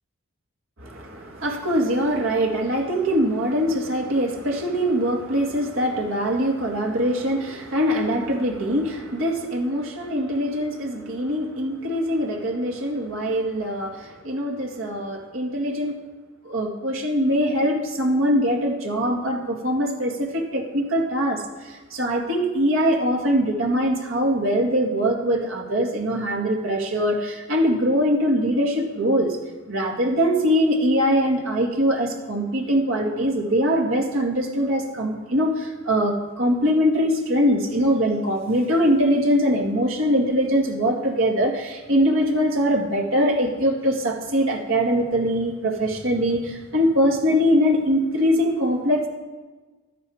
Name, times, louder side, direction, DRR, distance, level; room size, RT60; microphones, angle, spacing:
voice 1, 0.8-16.0 16.4-29.4 29.7-49.1, equal, 70° right, 1 dB, 2.0 m, -22 dB
12.5 x 9.5 x 4.9 m, 1.3 s
head